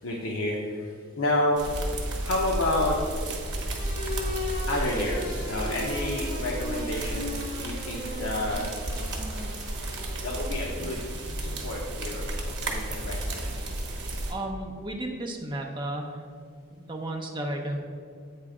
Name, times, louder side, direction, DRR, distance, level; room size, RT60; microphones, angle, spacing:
voice 1, 0.0-1.7 2.2-3.0 4.3-9.5 10.2-12.3 12.6-13.6, left 1 dB, 65° left, -2 dB, 0.7 m, -30 dB
sound 1, 1.6-14.3, right 1 dB, 55° right, 1.0 m, -33 dB
sound 2, 3.8-12.9, left 1 dB, 40° left, 1.2 m, -39 dB
voice 2, 14.3-16.2 16.8-17.8, right 1 dB, 20° right, 1 dB, 0.7 m, -33 dB
8.4 x 3.2 x 4.9 m, 2.2 s
head